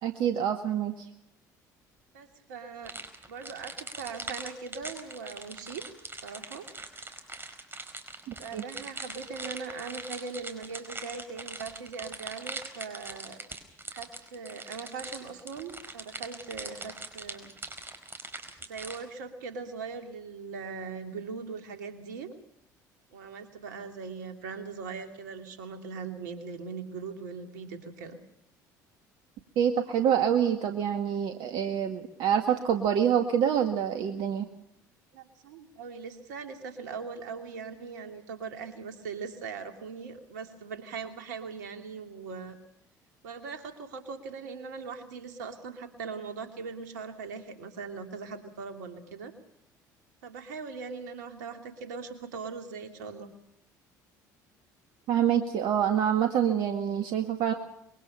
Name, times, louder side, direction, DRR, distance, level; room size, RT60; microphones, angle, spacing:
voice 1, 0.0-1.1 8.3-8.6 29.6-34.5 55.1-57.5, right 9 dB, 60° right, 6 dB, 1.9 m, -26 dB
voice 2, 2.1-2.9 3.3-5.8 6.2-6.7 8.3-13.4 13.9-17.5 18.7-22.3 23.1-28.2 35.1-42.6 43.2-49.3 50.2-53.3, right 5 dB, 75° right, 6 dB, 2.7 m, -40 dB
sound 1, 2.9-19.0, right 3 dB, 20° right, 4.8 m, -41 dB
25.0 x 22.5 x 5.6 m, 0.79 s
hypercardioid pair, 60°, 10 cm